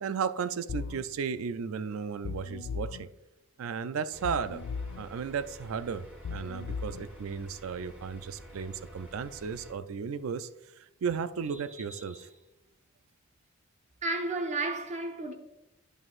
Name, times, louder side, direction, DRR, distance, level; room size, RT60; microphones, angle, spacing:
voice 1, 0.0-3.1 3.6-4.6 5.0-10.5 11.0-12.2, right 6 dB, 75° right, 0.4 m, -34 dB
sound 1, 0.7-1.0 2.2-3.0 4.2-5.0 6.2-7.0, left 5 dB, 75° left, 0.3 m, -37 dB
sound 2, 4.1-9.7, equal, 10° right, 2.0 m, -50 dB
voice 2, 11.9-12.2 14.0-15.3, right 2 dB, 35° right, 0.7 m, -33 dB
9.1 x 6.1 x 2.4 m
head